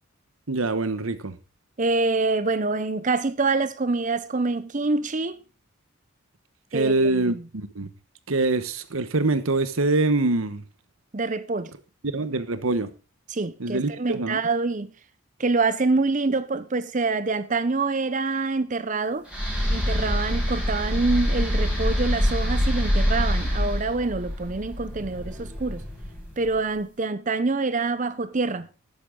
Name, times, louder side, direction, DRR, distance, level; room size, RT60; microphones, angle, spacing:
voice 1, 0.5-1.3 6.7-7.9 8.3-10.6 12.1-12.9 13.6-14.4, right 2 dB, 75° right, 1.1 m, -24 dB
voice 2, 1.8-5.4 6.7-7.5 11.1-11.7 13.3-14.9 15.4-19.3 19.7-25.8 26.4-28.7, right 3 dB, 35° right, 0.6 m, -26 dB
sound 1, 19.3-26.5, equal, 5° right, 4.9 m, -25 dB
13.5 x 10.0 x 3.7 m
head